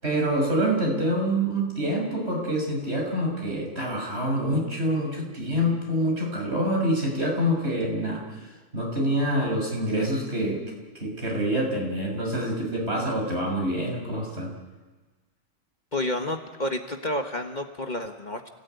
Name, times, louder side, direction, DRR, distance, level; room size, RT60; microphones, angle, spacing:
voice 1, 0.0-10.6 11.0-14.5, equal, 55° right, 0 dB, 6.9 m, -26 dB
voice 2, 15.9-18.5, left 1 dB, 35° left, 4 dB, 1.6 m, -30 dB
30.0 x 17.5 x 9.5 m, 1.3 s
omnidirectional pair, 1.3 m